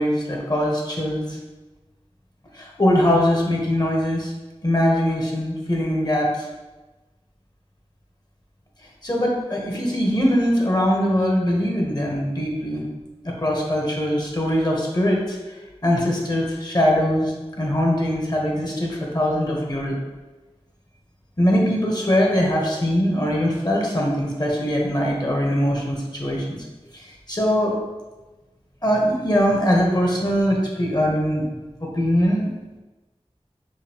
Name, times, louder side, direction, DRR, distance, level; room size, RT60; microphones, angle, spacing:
voice 1, 0.0-1.4 2.5-4.3 4.6-6.5 9.0-12.9 13.2-15.6 15.8-20.0 21.4-26.6 26.9-27.7 28.8-31.4 31.8-32.5, equal, 40° left, -2 dB, 0.9 m, -22 dB
5.0 x 2.3 x 2.8 m, 1.2 s
wide cardioid pair, 45°, 11 cm